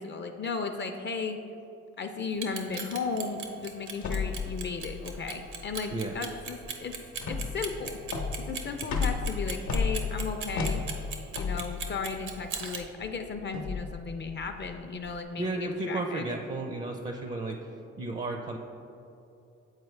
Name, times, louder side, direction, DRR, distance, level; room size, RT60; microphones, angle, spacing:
voice 1, 0.0-1.4 2.0-7.0 7.2-8.0 8.4-10.8 11.3-15.6 15.9-16.3, left 4 dB, 40° left, 6 dB, 0.4 m, -35 dB
Clock, 2.3-12.8, right 6 dB, 75° right, 0.8 m, -37 dB
sound 1, 4.0-15.2, left 4 dB, 75° left, 0.8 m, -34 dB
voice 2, 15.4-17.6 18.0-18.6, right 2 dB, 25° right, 4 dB, 0.4 m, -33 dB
8.0 x 4.2 x 3.2 m, 2.9 s
cardioid pair, 90°, 30 cm